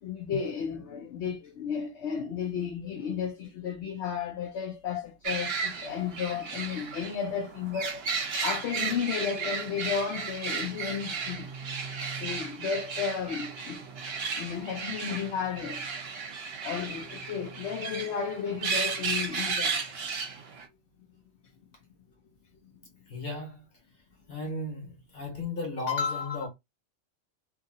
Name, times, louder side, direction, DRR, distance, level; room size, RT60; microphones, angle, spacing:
voice 1, 0.0-8.0 8.4-11.5 12.2-13.9 14.3-15.9 16.6-19.8, left 7 dB, 65° left, 0.9 m, -33 dB
sound 1, 5.2-20.7, right 5 dB, 60° right, 0.9 m, -34 dB
voice 2, 23.1-23.6 24.3-26.5, left 4 dB, 50° left, 1.4 m, -33 dB
2.7 x 2.6 x 2.6 m
omnidirectional pair, 1.3 m